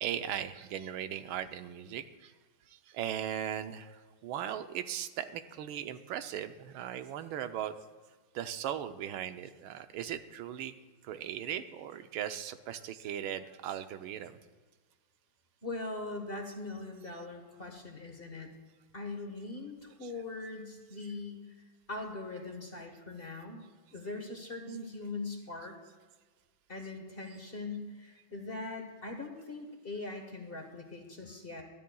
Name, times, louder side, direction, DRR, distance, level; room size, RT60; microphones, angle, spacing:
voice 1, 0.0-2.3 2.7-7.8 8.3-10.7 11.0-14.4 20.0-20.1, right 10 dB, 85° right, 9 dB, 1.5 m, -38 dB
voice 2, 15.6-18.5 18.9-21.6 21.9-23.6 23.9-25.8 26.7-31.6, left 3 dB, 30° left, 3 dB, 1.3 m, -41 dB
21.0 x 13.0 x 2.3 m, 1.4 s
omnidirectional pair, 2.2 m